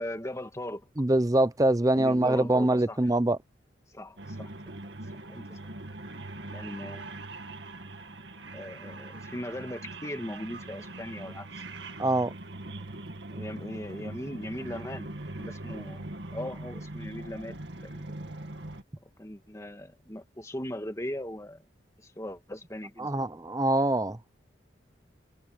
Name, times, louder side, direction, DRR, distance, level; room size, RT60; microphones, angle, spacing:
voice 1, 0.0-0.8 1.9-3.0 3.9-4.5 5.2-5.6 6.5-7.3 8.5-11.6 13.3-15.1 15.4-16.0 16.3-18.1 19.2-21.6 22.0-23.2, left 1 dB, 15° left, 1.9 m, -39 dB
voice 2, 1.0-3.4 12.0-12.3 23.0-24.2, right 1 dB, 20° right, 0.6 m, -24 dB
sound 1, 4.2-18.8, right 2 dB, 65° right, 2.3 m, -41 dB
head